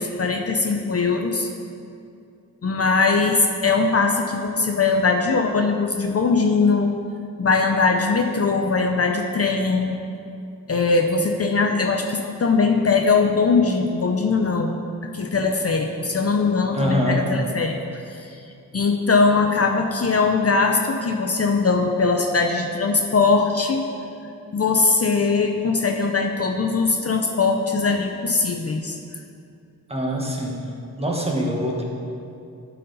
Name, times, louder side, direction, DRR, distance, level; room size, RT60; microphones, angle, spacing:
voice 1, 0.0-1.5 2.6-6.9 7.4-10.0 10.7-14.8 15.1-18.4 18.7-23.8 24.5-29.0, left 4 dB, 45° left, 3 dB, 0.6 m, -21 dB
voice 2, 16.7-17.2 29.9-30.6 31.0-31.8, equal, 20° right, -2 dB, 1.3 m, -24 dB
11.0 x 4.3 x 5.4 m, 2.5 s
wide cardioid pair, 100°, 34 cm